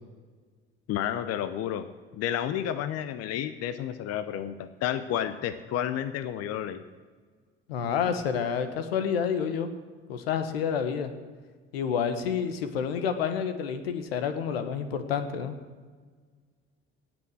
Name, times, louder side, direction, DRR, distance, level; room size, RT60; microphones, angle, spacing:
voice 1, 0.9-1.8 2.1-6.8, left 10 dB, 55° left, 12 dB, 0.8 m, -31 dB
voice 2, 7.7-9.7 10.1-11.1 11.7-15.5, left 7 dB, 85° left, 9 dB, 1.2 m, -29 dB
18.0 x 6.2 x 7.7 m, 1.5 s
hypercardioid pair, 65°, 29 cm